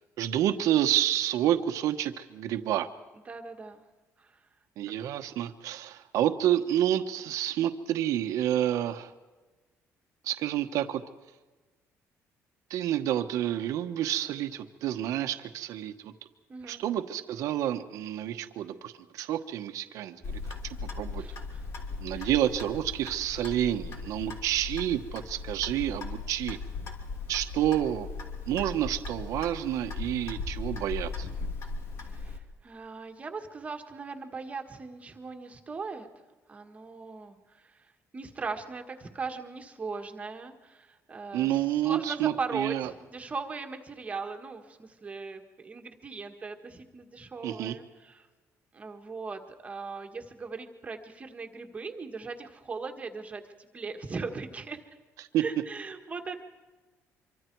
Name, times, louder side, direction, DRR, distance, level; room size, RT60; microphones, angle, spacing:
voice 1, 0.2-2.9 4.8-9.1 10.2-11.0 12.7-16.1 16.7-21.2 22.0-26.6 27.3-28.1 28.5-31.3 41.3-42.9 47.4-47.8 55.3-55.4, right 12 dB, 75° right, 8 dB, 1.2 m, -29 dB
voice 2, 3.2-3.8 4.2-4.4 16.5-16.8 21.2-21.6 22.1-22.3 32.0-36.1 36.5-48.3 48.7-54.8 55.4-56.4, right 4 dB, 25° right, 4 dB, 1.6 m, -39 dB
Clock, 20.2-32.4, left 4 dB, 55° left, 2.8 m, -38 dB
25.0 x 24.5 x 4.7 m, 1.3 s
cardioid pair, 150°, 6 cm